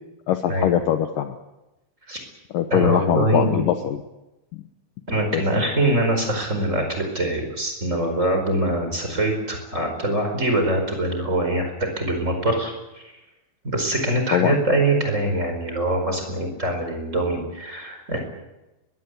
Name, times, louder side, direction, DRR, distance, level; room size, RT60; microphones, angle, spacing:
voice 1, 0.3-1.4 2.5-4.0 4.5-4.6 5.3-5.4 14.3-14.6, left 11 dB, 80° left, 7 dB, 1.9 m, -22 dB
voice 2, 2.7-3.6 5.1-13.0 13.6-18.2, right 1 dB, 15° right, 4 dB, 4.5 m, -23 dB
22.5 x 21.5 x 8.2 m, 1.0 s
omnidirectional pair, 5.4 m